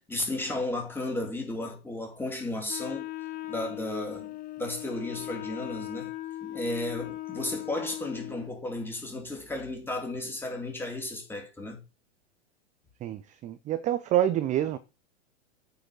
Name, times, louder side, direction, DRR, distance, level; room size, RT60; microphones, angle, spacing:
voice 1, 0.0-3.1 3.5-6.1 6.4-11.8, left 2 dB, 5° left, 3.2 m, -34 dB
Wind instrument woodwind instrument, 2.7-8.5, left 16 dB, 25° left, 0.7 m, -38 dB
voice 2, 13.0-14.8, right 12 dB, 20° right, 0.6 m, -27 dB
8.9 x 4.9 x 6.2 m
hypercardioid pair, 110°, 35 cm